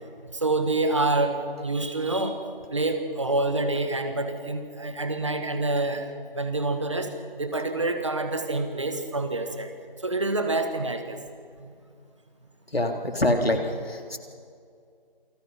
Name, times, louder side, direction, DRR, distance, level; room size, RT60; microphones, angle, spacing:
voice 1, 0.3-2.4 2.7-9.7 10.0-11.2 11.6-11.7, right 2 dB, 30° right, 7 dB, 1.6 m, -27 dB
voice 2, 12.7-13.6 14.1-14.2, left 1 dB, 85° left, 4 dB, 3.4 m, -23 dB
28.0 x 20.0 x 5.9 m, 2.2 s
figure-of-eight pair, 170°, 29 cm